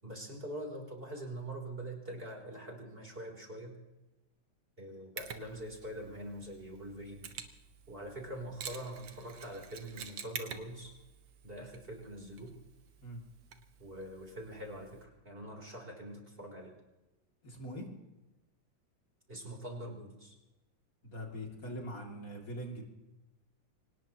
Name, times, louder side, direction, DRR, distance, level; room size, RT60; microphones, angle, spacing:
voice 1, 0.0-3.7 4.8-7.3 7.9-10.9 11.4-12.6 13.8-16.8 19.3-20.4, right 1 dB, 30° right, 1 dB, 3.7 m, -44 dB
Mechanisms, 5.2-15.0, right 7 dB, 80° right, 2.0 m, -49 dB
voice 2, 17.4-17.9 21.0-22.9, equal, 45° left, 1 dB, 3.1 m, -42 dB
24.5 x 19.0 x 3.0 m, 1.0 s
omnidirectional pair, 2.1 m